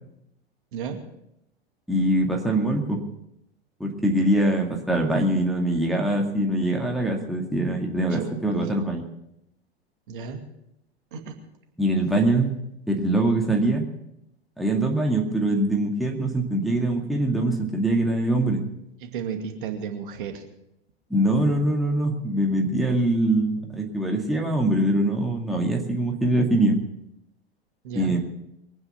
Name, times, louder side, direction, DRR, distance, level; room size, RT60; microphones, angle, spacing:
voice 1, 1.9-3.0 3.8-9.0 11.8-12.5 12.9-13.8 14.6-18.6 21.1-26.8 27.9-28.2, right 1 dB, ahead, -1 dB, 2.2 m, -23 dB
voice 2, 8.1-8.5 10.1-10.4 11.1-11.3 19.0-20.4 27.8-28.2, right 7 dB, 55° right, 4 dB, 2.5 m, -33 dB
23.0 x 9.6 x 5.8 m, 0.81 s
figure-of-eight pair, 95°, 31 cm